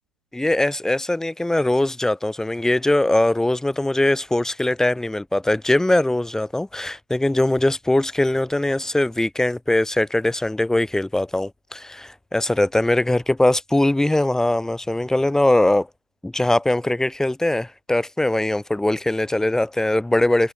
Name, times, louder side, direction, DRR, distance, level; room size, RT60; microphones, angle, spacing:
voice 1, 0.3-15.9 16.2-20.5, left 1 dB, 5° left, 5.8 m, -21 dB
figure-of-eight pair, 105°, 14 cm